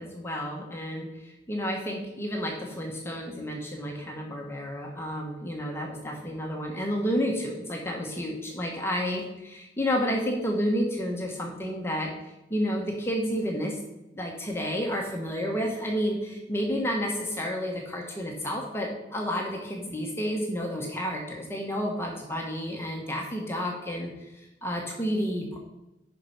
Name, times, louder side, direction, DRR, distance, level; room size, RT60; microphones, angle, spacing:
voice 1, 0.0-12.1 12.5-13.8 14.1-25.6, equal, 15° left, 0 dB, 1.0 m, -30 dB
6.4 x 5.3 x 5.7 m, 0.93 s
head